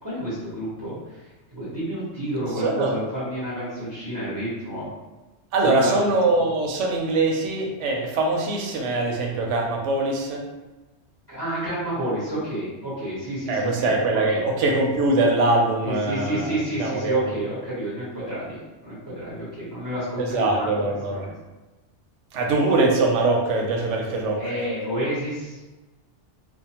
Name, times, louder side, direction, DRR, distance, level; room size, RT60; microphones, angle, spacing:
voice 1, 0.0-4.9 5.6-6.0 11.3-14.4 15.8-21.3 24.4-25.6, equal, 20° right, -11 dB, 0.9 m, -30 dB
voice 2, 2.6-3.0 5.5-10.4 13.5-17.3 20.2-21.2 22.3-24.4, right 2 dB, 90° right, 0 dB, 0.9 m, -22 dB
2.6 x 2.1 x 2.8 m, 1.1 s
omnidirectional pair, 1.2 m